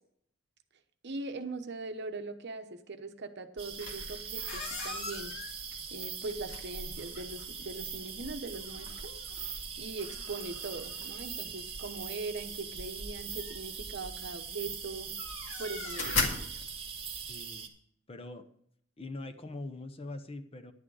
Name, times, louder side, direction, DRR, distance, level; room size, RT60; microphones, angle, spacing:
voice 1, 1.0-5.3 5.9-9.1 9.8-15.1 15.6-16.6, right 3 dB, 55° right, 8 dB, 1.0 m, -41 dB
sound 1, 3.6-17.7, right 7 dB, 30° right, 1.3 m, -42 dB
sound 2, 3.7-17.3, left 3 dB, 65° left, 2.1 m, -41 dB
voice 2, 17.1-17.7 18.1-18.5 19.0-20.7, left 2 dB, 30° left, 8 dB, 0.8 m, -43 dB
11.0 x 8.8 x 4.8 m, 0.66 s
head